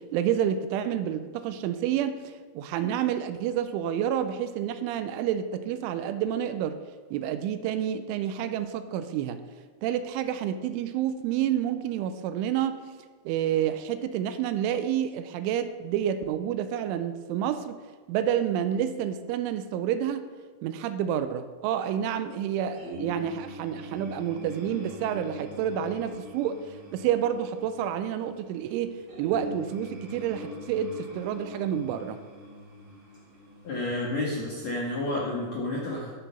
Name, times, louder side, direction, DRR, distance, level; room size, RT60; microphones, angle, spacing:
voice 1, 0.0-6.8 7.1-9.4 9.8-12.8 13.3-17.8 18.1-20.3 20.6-32.2, right 9 dB, 90° right, 10 dB, 3.1 m, -29 dB
sound 1, 22.7-34.0, equal, 30° right, 3.6 m, -43 dB
voice 2, 33.6-36.1, left 2 dB, 70° left, -5 dB, 1.7 m, -30 dB
12.0 x 6.8 x 5.6 m, 1.5 s
omnidirectional pair, 5.5 m